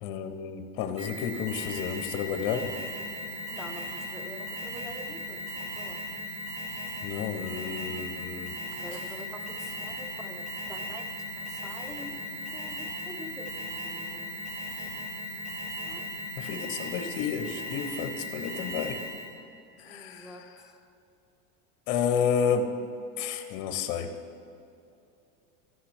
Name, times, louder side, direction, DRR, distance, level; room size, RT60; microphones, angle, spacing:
voice 1, 0.0-2.7 7.0-8.5 16.4-19.0 19.8-20.3 21.9-22.6 23.2-24.1, left 7 dB, 55° left, 6 dB, 0.8 m, -31 dB
Alarm, 1.0-19.4, equal, 40° right, 2.0 m, -37 dB
voice 2, 3.5-6.0 8.8-11.0 11.4-14.3 15.8-16.1 19.9-20.7, left 1 dB, ahead, 3 dB, 0.8 m, -46 dB
14.0 x 5.8 x 3.3 m, 2.7 s
supercardioid pair, 105°, 40 cm